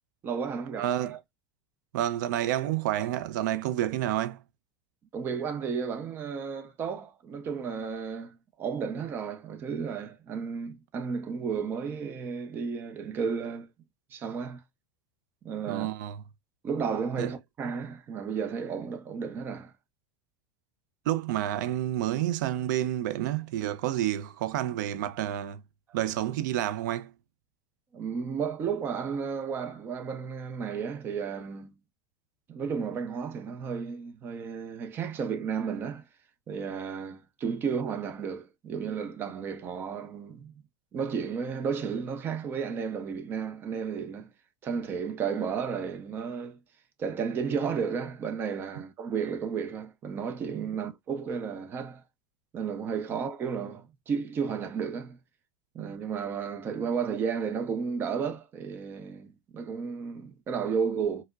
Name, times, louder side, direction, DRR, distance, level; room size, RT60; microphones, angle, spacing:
voice 1, 0.2-1.2 5.1-13.7 14.1-14.6 15.4-15.9 16.6-19.7 27.9-31.8 32.5-36.0 36.5-40.5 40.9-44.3 44.6-46.6 47.0-52.0 52.5-55.2 55.7-61.2, right 6 dB, 20° right, 0.5 m, -33 dB
voice 2, 0.8-1.1 1.9-4.4 15.7-16.2 17.2-17.3 21.1-25.6 25.9-27.1, right 12 dB, 70° right, 0.4 m, -29 dB
4.5 x 2.0 x 2.3 m
supercardioid pair, 170°, 10 cm